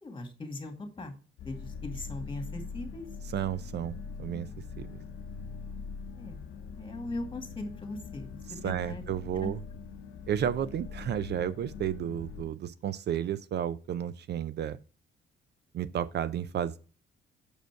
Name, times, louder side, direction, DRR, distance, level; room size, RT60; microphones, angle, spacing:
voice 1, 0.0-1.2 1.4-3.1 6.2-6.4 6.8-9.0 9.3-9.5, left 2 dB, 25° left, 2.0 m, -39 dB
sound 1, 1.4-12.4, left 5 dB, 70° left, 0.7 m, -42 dB
voice 2, 3.3-4.5 4.8-5.0 8.6-9.6 10.3-14.8 15.7-16.8, right 10 dB, 60° right, 0.5 m, -32 dB
6.6 x 5.1 x 4.5 m
cardioid pair, 90°, 20 cm